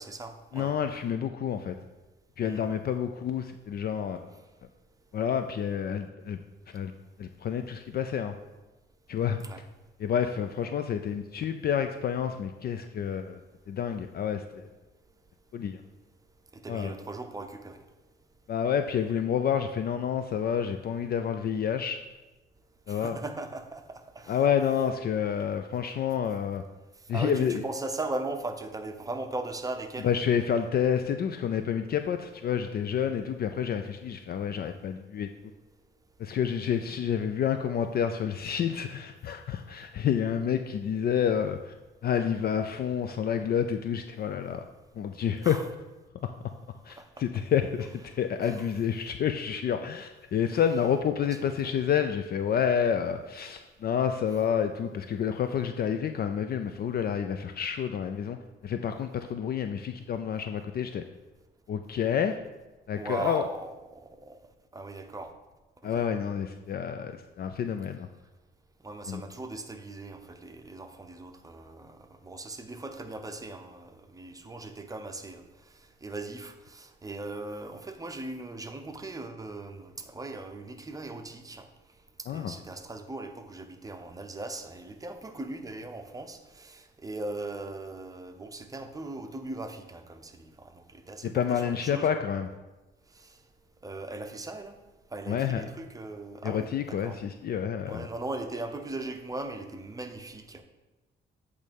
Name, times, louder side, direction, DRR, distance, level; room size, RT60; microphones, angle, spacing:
voice 1, 0.0-0.7 2.4-2.7 9.4-9.6 16.5-17.8 22.9-24.4 27.1-30.1 45.4-45.7 47.0-47.2 48.4-48.7 51.4-51.8 63.0-64.4 64.7-65.3 65.9-66.1 68.8-75.5 76.0-81.7 82.3-92.1 93.2-93.3 93.8-94.8 95.1-97.2 97.9-100.6, right 2 dB, 15° right, 7 dB, 0.7 m, -39 dB
voice 2, 0.5-1.7 2.4-4.2 5.1-6.4 6.7-6.9 7.2-8.3 9.1-9.4 10.0-13.4 13.7-14.7 15.5-15.8 16.7-16.9 18.5-22.0 22.9-23.2 24.3-26.6 27.1-27.6 30.0-35.3 36.2-41.8 42.0-44.6 45.0-45.6 46.8-58.4 58.6-61.0 61.7-62.4 62.9-63.4 65.8-68.1 69.1-69.2 82.3-82.5 91.2-92.5 95.3-95.6 96.4-98.1, left 8 dB, 50° left, 8 dB, 0.4 m, -29 dB
8.2 x 3.3 x 5.2 m, 1.1 s
cardioid pair, 90°, 20 cm